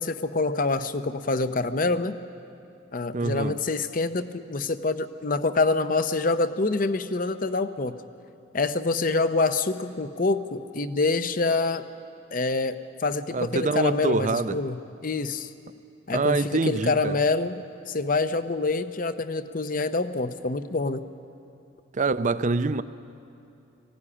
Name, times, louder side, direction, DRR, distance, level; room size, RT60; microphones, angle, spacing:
voice 1, 0.0-2.2 2.9-7.9 8.5-11.9 12.3-15.5 16.1-21.0, left 3 dB, 45° left, 0.7 m, -26 dB
voice 2, 3.1-3.6 13.3-14.6 16.1-17.2 21.9-22.8, right 3 dB, 40° right, 0.5 m, -25 dB
19.5 x 16.0 x 10.0 m
head